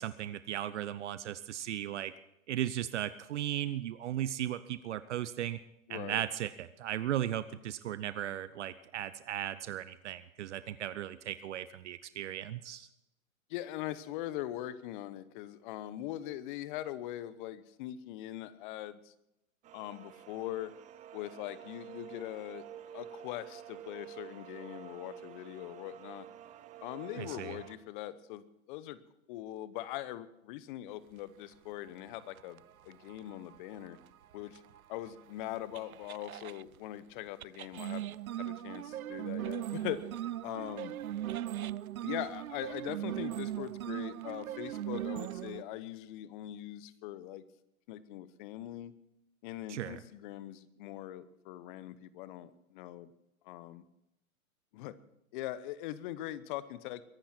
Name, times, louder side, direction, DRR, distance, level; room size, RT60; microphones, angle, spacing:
voice 1, 0.0-2.1 2.5-5.6 5.9-12.9 27.2-27.6 49.7-50.0, right 11 dB, 55° right, 15 dB, 0.8 m, -36 dB
voice 2, 5.9-6.3 13.5-19.1 19.7-20.7 21.1-26.3 26.8-29.0 29.3-34.0 34.3-34.6 34.9-40.0 40.4-40.9 42.0-47.4 47.9-48.9 49.4-53.1 53.4-53.8 54.7-55.0 55.3-57.0, left 13 dB, 35° left, 16 dB, 1.1 m, -41 dB
sound 1, 19.6-27.8, right 11 dB, 15° right, 0.7 m, -50 dB
sound 2, 32.1-36.6 37.4-45.6, right 12 dB, 85° right, 0.6 m, -39 dB
22.5 x 11.5 x 4.4 m, 0.83 s
hypercardioid pair, 120°, 42 cm